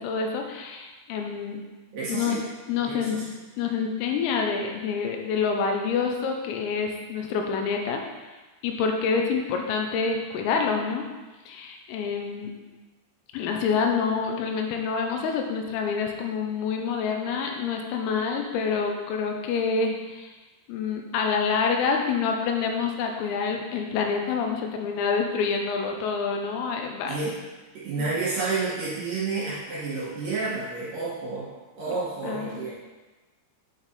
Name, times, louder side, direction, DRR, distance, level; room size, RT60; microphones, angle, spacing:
voice 1, 0.0-1.6 2.1-2.4 2.7-3.2 3.6-8.0 8.6-11.1 11.5-12.5 13.3-20.3 20.7-27.2 28.0-28.1 32.2-32.7, left 5 dB, 85° left, 2 dB, 3.4 m, -27 dB
voice 2, 1.9-2.4 2.9-3.3 27.0-27.3 27.7-31.5 31.7-32.7, right 4 dB, 55° right, -9 dB, 3.0 m, -30 dB
8.9 x 5.2 x 4.1 m, 1.2 s
omnidirectional pair, 6.0 m